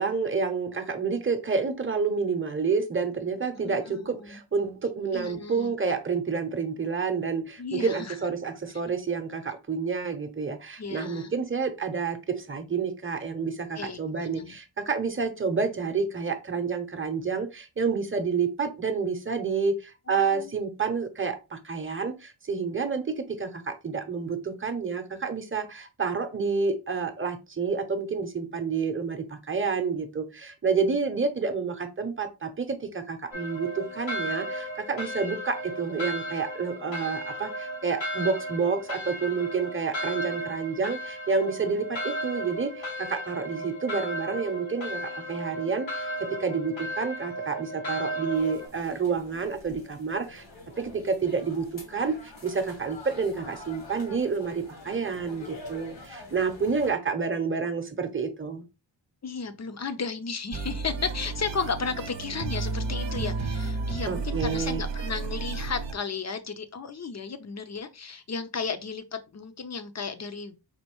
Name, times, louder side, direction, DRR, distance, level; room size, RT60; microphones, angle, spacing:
voice 1, 0.0-50.4 50.8-58.6 64.1-64.8, right 5 dB, 25° right, 0.7 m, -29 dB
voice 2, 3.5-4.4 5.1-5.7 7.6-8.2 10.8-11.3 13.8-14.6 20.1-20.5 59.2-70.7, left 5 dB, 35° left, 0.5 m, -34 dB
sound 1, 33.3-48.7, equal, 90° left, 1.2 m, -35 dB
sound 2, 48.3-56.9, left 2 dB, 70° left, 1.4 m, -46 dB
sound 3, 60.5-65.9, right 3 dB, 70° right, 0.7 m, -32 dB
4.3 x 2.6 x 3.0 m
wide cardioid pair, 95°, 45 cm